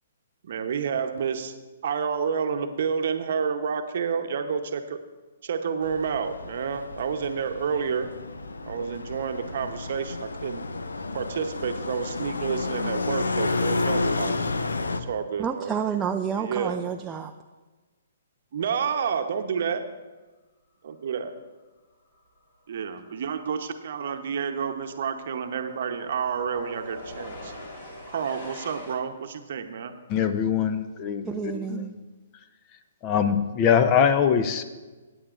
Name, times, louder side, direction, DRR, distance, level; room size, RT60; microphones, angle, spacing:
voice 1, 0.4-1.5 1.8-5.0 5.4-8.1 8.7-10.6 11.1-14.4 15.1-15.7 16.4-16.8 18.5-19.8 20.8-21.3 22.7-27.5 28.1-29.9, right 6 dB, 60° right, 7 dB, 0.8 m, -29 dB
sound 1, 5.8-15.0, left 3 dB, 85° left, 0.6 m, -31 dB
voice 2, 15.4-17.3 31.3-31.9, right 7 dB, 15° right, 4 dB, 0.4 m, -29 dB
sound 2, 22.2-22.4 22.7-29.0, left 1 dB, 60° left, 3.6 m, -44 dB
voice 3, 30.1-31.9 33.0-34.6, left 7 dB, 30° left, 10 dB, 0.6 m, -23 dB
15.5 x 8.7 x 2.5 m, 1.3 s
hypercardioid pair, 130°, 0 cm